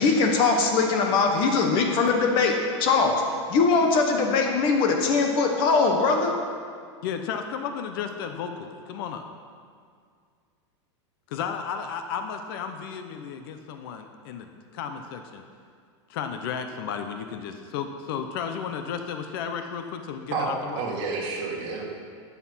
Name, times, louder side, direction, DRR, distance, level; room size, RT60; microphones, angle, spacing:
voice 1, 0.0-2.5 2.8-3.2 3.5-6.3, left 4 dB, 35° left, 3 dB, 1.2 m, -21 dB
voice 2, 7.0-9.3 11.3-15.4 16.1-20.8, left 7 dB, 50° left, 7 dB, 0.9 m, -33 dB
voice 3, 20.3-21.8, right 4 dB, 40° right, -2 dB, 2.3 m, -30 dB
12.5 x 8.4 x 5.7 m, 2.1 s
supercardioid pair, 170°, 15 cm